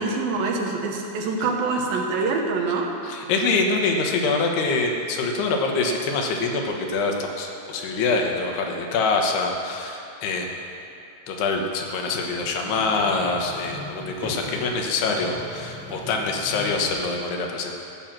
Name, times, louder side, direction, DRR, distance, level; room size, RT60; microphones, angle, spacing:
voice 1, 0.0-2.9, right 3 dB, 75° right, 1 dB, 2.5 m, -25 dB
voice 2, 3.0-10.5 11.3-17.7, left 3 dB, 80° left, 2 dB, 3.1 m, -25 dB
sound 1, 12.3-16.9, left 1 dB, 20° right, 3.5 m, -39 dB
14.5 x 5.9 x 7.4 m, 2.6 s
omnidirectional pair, 4.6 m